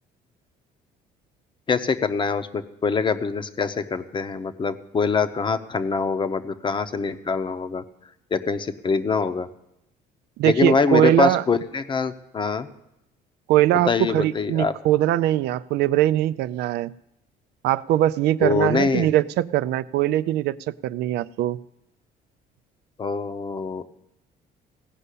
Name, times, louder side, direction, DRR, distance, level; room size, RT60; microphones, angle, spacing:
voice 1, 1.7-7.8 8.3-9.5 10.4-12.7 13.9-14.7 18.4-19.1 23.0-23.9, left 5 dB, 30° left, 10 dB, 0.8 m, -24 dB
voice 2, 10.4-11.4 13.5-16.9 17.6-21.6, right 13 dB, 75° right, 15 dB, 0.5 m, -21 dB
16.5 x 5.5 x 8.3 m, 0.82 s
cardioid pair, 110°, 17 cm